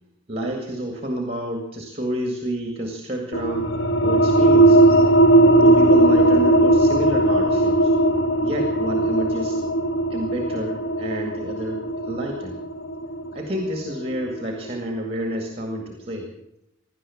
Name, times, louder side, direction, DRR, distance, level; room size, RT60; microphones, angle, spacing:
voice 1, 0.3-3.7 4.0-5.0 5.6-7.9 8.4-9.6 10.1-12.6 13.3-16.3, right 1 dB, 30° right, 3 dB, 2.0 m, -29 dB
sound 1, 3.3-14.5, right 1 dB, 70° left, 1.1 m, -18 dB
17.5 x 11.5 x 7.1 m, 0.86 s
head